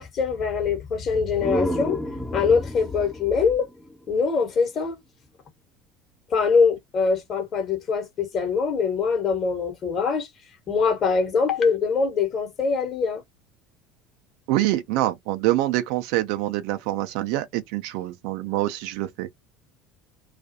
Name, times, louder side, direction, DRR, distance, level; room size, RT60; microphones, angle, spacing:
voice 1, 0.0-2.0 2.3-3.7 4.1-5.0 6.3-10.3 10.7-13.2, left 5 dB, 40° left, 1.0 m, -23 dB
sound 1, 1.2-4.8, equal, ahead, 0.6 m, -32 dB
voice 2, 14.5-19.3, right 16 dB, 60° right, 0.4 m, -25 dB
2.4 x 2.3 x 2.6 m
figure-of-eight pair, 65°, 0 cm